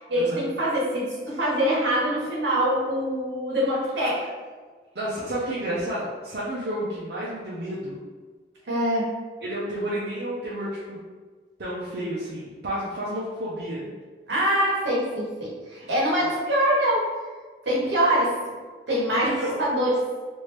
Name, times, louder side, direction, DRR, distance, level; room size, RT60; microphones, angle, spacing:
voice 1, 0.0-4.3 8.7-9.1 14.3-17.0 17.6-18.3 18.9-19.9, equal, 90° right, -5 dB, 1.1 m, -24 dB
voice 2, 4.9-8.0 9.4-11.0 11.6-13.9 19.1-19.5, right 1 dB, 70° right, -8 dB, 0.6 m, -31 dB
3.2 x 2.6 x 3.0 m, 1.4 s
head